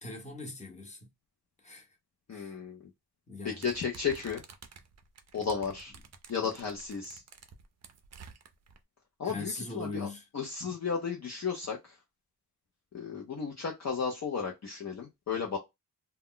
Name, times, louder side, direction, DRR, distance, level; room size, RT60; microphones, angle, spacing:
voice 1, 0.0-1.1 1.6-1.9 2.3-2.6 3.3-3.7 9.2-10.2, left 3 dB, 15° left, 0.9 m, -40 dB
voice 2, 2.3-2.8 3.4-4.4 5.3-5.9 6.3-7.2 9.2-10.1 10.3-12.0 12.9-15.6, left 6 dB, 40° left, 0.6 m, -34 dB
sound 1, 3.6-8.8, right 5 dB, 40° right, 0.5 m, -52 dB
2.2 x 2.0 x 3.7 m
cardioid pair, 85°, 41 cm